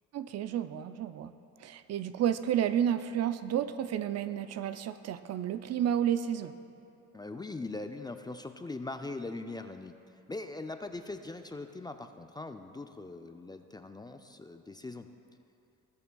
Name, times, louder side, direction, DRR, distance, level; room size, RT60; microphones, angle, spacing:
voice 1, 0.1-1.3 1.6-6.5, right 10 dB, 60° right, 12 dB, 0.4 m, -31 dB
voice 2, 7.1-10.0 10.3-15.1, left 2 dB, 15° left, 7 dB, 0.3 m, -41 dB
19.0 x 6.8 x 2.3 m, 2.7 s
cardioid pair, 90°, 30 cm